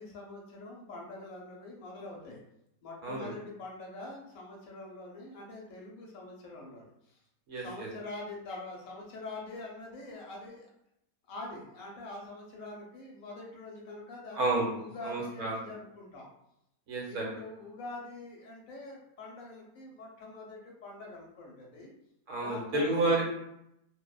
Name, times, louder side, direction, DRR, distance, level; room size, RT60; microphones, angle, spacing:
voice 1, 0.0-2.4 2.8-7.2 7.6-10.7 11.3-16.3 17.1-21.9 22.4-23.0, left 2 dB, 70° left, -2 dB, 1.0 m, -44 dB
voice 2, 3.0-3.3 7.5-7.9 14.3-14.7 15.0-15.6 16.9-17.3 22.3-23.2, right 2 dB, 60° right, -2 dB, 1.0 m, -30 dB
2.6 x 2.1 x 2.2 m, 0.79 s
omnidirectional pair, 1.6 m